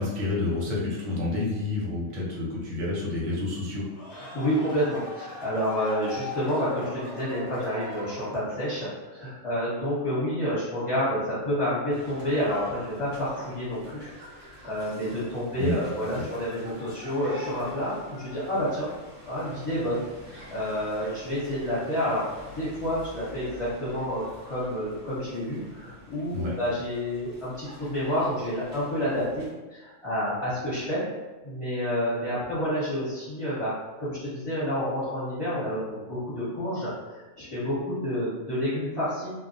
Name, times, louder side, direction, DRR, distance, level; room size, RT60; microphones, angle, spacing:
voice 1, 0.0-3.8 15.6-15.8 16.1-16.2 26.3-26.5, left 2 dB, 80° right, -4 dB, 1.1 m, -29 dB
sound 1, 3.8-8.8, left 2 dB, 65° left, 0.8 m, -40 dB
voice 2, 4.1-14.1 14.4-18.9 19.2-20.0 20.3-22.2 22.6-31.0 31.4-33.7 34.0-39.3, equal, 25° left, -12 dB, 0.9 m, -29 dB
sound 2, 11.9-29.5, left 1 dB, 40° right, 0.9 m, -47 dB
2.3 x 2.0 x 2.6 m, 1.2 s
omnidirectional pair, 1.4 m